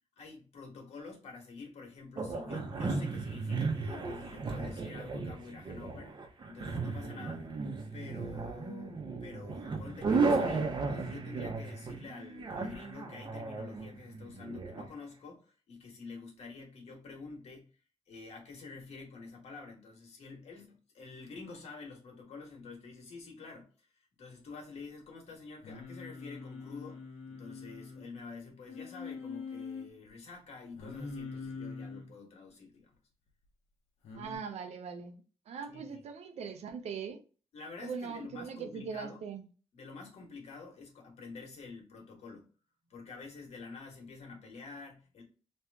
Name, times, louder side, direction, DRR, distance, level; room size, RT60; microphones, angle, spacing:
voice 1, 0.2-6.2 6.4-7.4 7.9-17.7 18.1-23.9 24.2-32.9 35.7-36.0 37.5-39.2 39.7-42.5 42.9-45.2, left 4 dB, 70° left, 1.6 m, -48 dB
sound 1, 2.2-14.8, right 4 dB, 40° right, 1.0 m, -35 dB
Singing, 25.6-28.1 28.7-29.9 30.8-32.1 34.0-34.4, left 4 dB, 85° left, 1.1 m, -43 dB
voice 2, 34.1-37.2 37.8-39.4, right 6 dB, 75° right, 0.7 m, -41 dB
3.1 x 3.0 x 3.4 m
cardioid pair, 135°, 11 cm